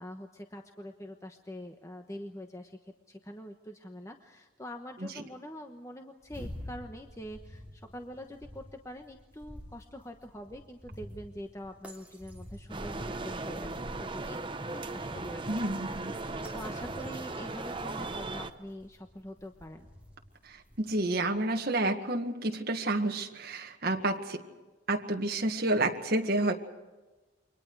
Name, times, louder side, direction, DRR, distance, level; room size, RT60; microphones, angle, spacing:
voice 1, 0.0-2.8 3.1-14.4 14.7-19.9, equal, 15° left, 4 dB, 1.1 m, -45 dB
sound 1, 6.2-21.4, equal, 5° right, 2.8 m, -50 dB
sound 2, 12.7-18.5, right 2 dB, 25° right, 0.9 m, -37 dB
voice 2, 15.5-16.1 20.5-24.4 24.9-26.5, right 2 dB, 50° right, 2 dB, 1.8 m, -30 dB
29.0 x 23.5 x 4.8 m, 1.2 s
head